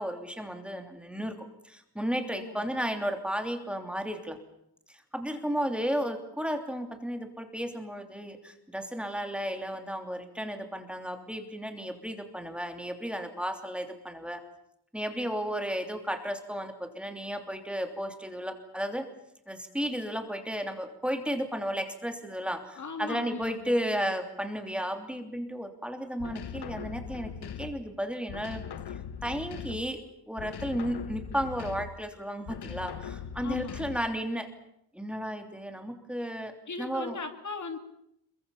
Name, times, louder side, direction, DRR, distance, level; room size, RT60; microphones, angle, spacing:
voice 1, 0.0-1.4 1.6-4.4 4.9-14.4 14.9-19.1 19.5-27.3 27.6-28.6 29.2-30.0 30.3-34.5 34.9-37.2, equal, 5° right, 5 dB, 3.1 m, -33 dB
voice 2, 2.3-2.7 22.7-23.8 33.4-33.9 36.7-37.8, left 4 dB, 50° left, 6 dB, 2.8 m, -38 dB
sound 1, 26.2-27.9 28.3-30.0 30.4-32.1 32.5-34.2, left 8 dB, 80° left, 1.1 m, -40 dB
27.5 x 23.0 x 7.2 m, 0.77 s
wide cardioid pair, 170°, 39 cm